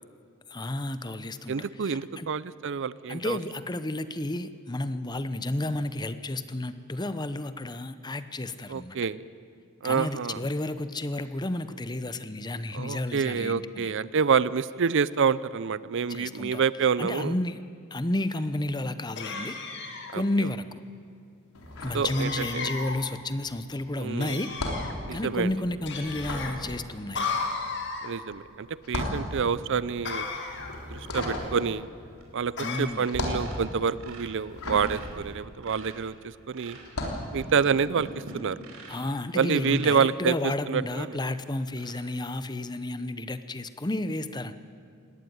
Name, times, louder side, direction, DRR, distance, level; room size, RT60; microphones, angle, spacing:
voice 1, 0.5-2.3 3.1-9.0 9.8-13.9 16.1-16.6 17.0-17.6 17.9-19.6 20.1-20.7 21.8-24.5 25.1-27.3 32.6-33.1 38.9-44.5, left 1 dB, 20° left, 12 dB, 0.7 m, -31 dB
voice 2, 1.5-3.4 8.7-9.2 9.8-10.4 12.7-17.3 20.1-20.5 21.9-22.7 23.9-24.4 25.1-25.5 28.0-30.3 30.9-31.9 32.3-32.5 32.8-36.8 37.3-38.1 38.3-38.6 39.3-41.2, right 6 dB, 60° right, 18 dB, 0.5 m, -27 dB
sound 1, 19.2-20.2 22.1-23.0 24.2-24.9 25.8-26.5 27.1-28.1 30.0-30.8 32.6-32.8, left 4 dB, 55° left, 2.2 m, -34 dB
sound 2, 21.5-22.8 23.0-36.2 36.8-37.3, left 1 dB, 80° left, 3.7 m, -35 dB
sound 3, 32.1-32.5 32.7-33.0 33.3-36.1 36.5-39.2 39.5-40.0 40.6-40.7 41.1-41.2 41.7-41.9, right 2 dB, 80° right, 4.6 m, -45 dB
19.5 x 17.0 x 9.4 m, 2.5 s
head